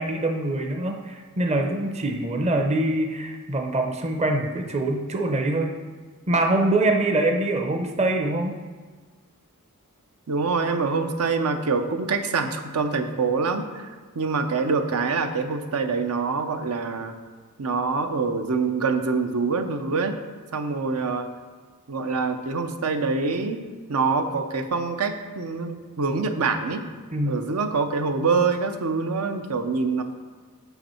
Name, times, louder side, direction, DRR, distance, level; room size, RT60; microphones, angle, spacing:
voice 1, 0.0-5.7 6.3-8.6 27.1-27.4, right 2 dB, 30° right, 3 dB, 0.6 m, -24 dB
voice 2, 10.3-13.9 14.2-17.2 17.6-20.2 20.5-21.3 21.9-23.6 23.9-26.9 27.2-30.0, right 4 dB, 80° right, 7 dB, 0.7 m, -25 dB
8.1 x 6.1 x 4.3 m, 1.4 s
head